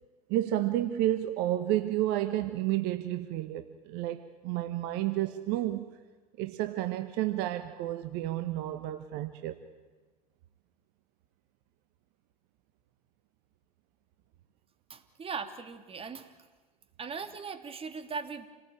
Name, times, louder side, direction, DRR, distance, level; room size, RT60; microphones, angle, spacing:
voice 1, 0.3-5.9 6.4-9.6, right 14 dB, 55° right, 1.3 m, -31 dB
voice 2, 14.9-16.3 17.0-18.5, right 5 dB, 30° right, 2.9 m, -39 dB
28.5 x 19.0 x 9.2 m
hypercardioid pair, 80°, 20 cm